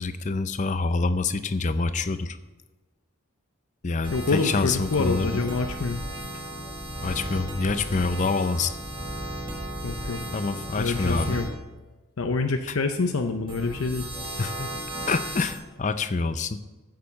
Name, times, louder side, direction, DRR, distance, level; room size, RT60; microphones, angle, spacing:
voice 1, 0.0-2.4 3.8-5.3 7.0-8.8 10.3-11.4 14.4-14.7 15.1-16.6, left 3 dB, 35° left, 12 dB, 0.5 m, -26 dB
sound 1, 4.0-11.5 13.5-15.6, right 1 dB, 25° right, 1.7 m, -35 dB
voice 2, 4.1-6.0 9.8-10.2 10.8-11.5 12.2-14.1, left 3 dB, 80° left, 6 dB, 0.7 m, -26 dB
9.5 x 6.7 x 7.2 m, 1.2 s
head